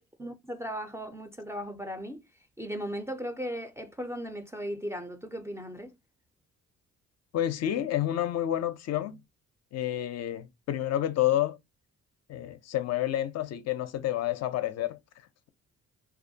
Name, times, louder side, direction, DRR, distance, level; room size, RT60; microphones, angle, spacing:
voice 1, 0.2-2.2 2.6-5.9, equal, 10° right, 0.4 m, -37 dB
voice 2, 7.3-9.2 9.7-11.6 12.3-15.0, left 12 dB, 60° left, 0.4 m, -29 dB
2.3 x 2.1 x 2.6 m
cardioid pair, 90°, 30 cm